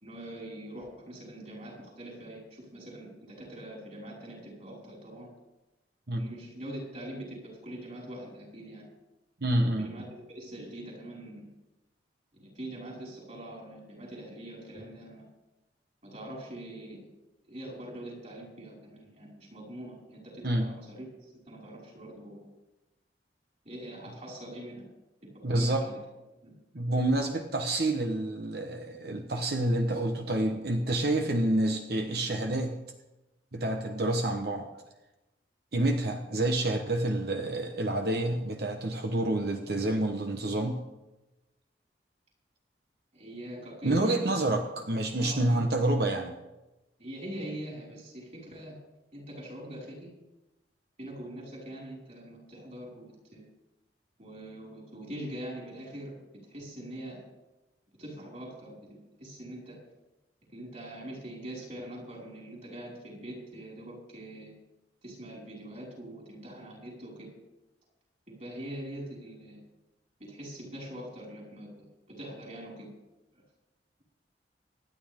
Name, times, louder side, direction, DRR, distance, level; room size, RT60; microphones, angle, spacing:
voice 1, 0.0-5.3 6.2-8.9 9.8-10.0 10.3-11.5 12.4-15.2 16.0-17.1 17.5-22.5 23.7-24.8 25.5-26.0 26.4-26.5 43.1-44.4 45.2-45.7 47.0-48.8 49.1-50.1 51.0-53.5 54.2-56.1 56.4-57.2 58.0-59.8 60.5-64.5 65.0-67.3 68.3-69.6 70.3-71.9 72.2-72.9, right 1 dB, 40° right, -3 dB, 5.3 m, -43 dB
voice 2, 9.4-9.9 20.4-20.7 25.4-25.9 26.7-32.8 33.5-34.7 35.7-40.8 43.8-46.3, right 1 dB, 60° right, 4 dB, 1.1 m, -28 dB
25.0 x 9.7 x 3.7 m, 1.0 s
head